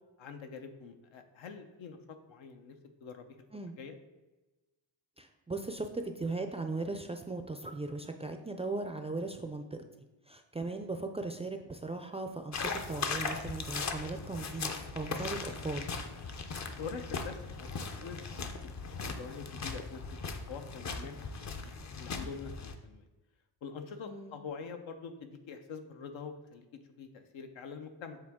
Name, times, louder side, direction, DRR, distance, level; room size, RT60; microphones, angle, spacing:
voice 1, 0.2-2.7 3.0-3.4 3.8-4.0 16.8-18.5 18.8-20.0 20.5-21.2 21.6-23.1 23.6-26.7 27.0-28.2, left 5 dB, 85° left, 6 dB, 0.8 m, -45 dB
voice 2, 5.2-9.8 10.3-15.9 24.0-24.4, right 2 dB, 15° right, 5 dB, 0.3 m, -38 dB
sound 1, 12.5-22.7, left 4 dB, 40° left, 0.6 m, -39 dB
7.7 x 3.9 x 3.6 m, 1.1 s
cardioid pair, 110°, 45 cm